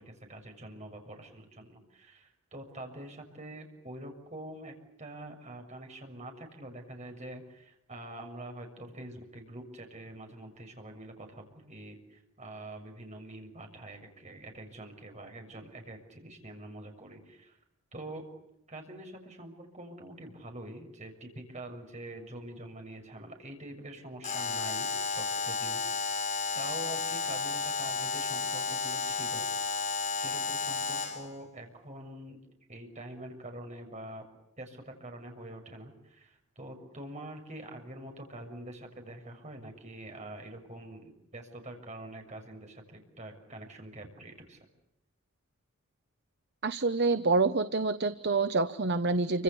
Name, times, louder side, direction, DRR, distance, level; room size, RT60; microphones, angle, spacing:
voice 1, 0.0-17.6 17.9-18.2 18.7-26.2 26.5-29.5 29.8-32.4 32.7-34.2 34.6-44.6, right 1 dB, 35° right, 4 dB, 6.7 m, -45 dB
Alarm, 24.2-31.3, left 4 dB, 35° left, 5.8 m, -32 dB
voice 2, 46.6-49.4, right 3 dB, 50° right, 11 dB, 0.9 m, -27 dB
29.5 x 26.0 x 7.0 m, 0.85 s
head